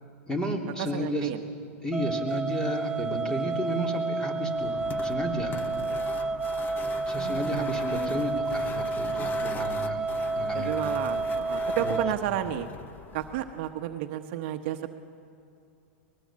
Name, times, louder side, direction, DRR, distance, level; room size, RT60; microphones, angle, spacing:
voice 1, 0.3-1.3 1.8-5.6 7.1-10.1 10.3-11.0 11.8-12.0, equal, 10° left, 2 dB, 3.3 m, -32 dB
voice 2, 0.8-1.4 7.1-8.3 10.5-12.7 13.1-14.9, right 12 dB, 55° right, 6 dB, 1.1 m, -32 dB
sound 1, 1.9-12.2, right 3 dB, 10° right, 0.7 m, -30 dB
sound 2, 4.5-13.9, left 6 dB, 25° left, 0.9 m, -41 dB
23.5 x 20.5 x 7.5 m, 2.5 s
hypercardioid pair, 125°, 7 cm